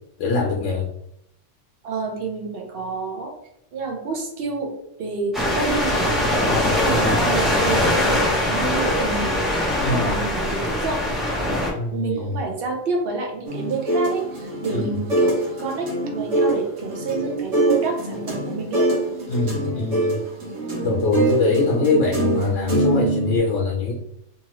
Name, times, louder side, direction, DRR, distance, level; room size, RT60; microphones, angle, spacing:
voice 1, 0.2-0.9 6.5-7.2 9.8-10.1 11.8-12.3 14.7-14.9 19.3-20.2 20.8-23.9, left 3 dB, 75° left, -1 dB, 0.9 m, -23 dB
voice 2, 1.8-3.3 3.7-4.7 5.0-6.1 6.8-11.1 11.4-11.5 11.9-18.9, right 4 dB, 55° right, 1 dB, 0.8 m, -29 dB
sound 1, 5.3-11.7, left 1 dB, ahead, 0.6 m, -22 dB
sound 2, 13.5-23.4, right 1 dB, 80° right, 1.3 m, -24 dB
2.9 x 2.4 x 3.0 m, 0.77 s
omnidirectional pair, 1.3 m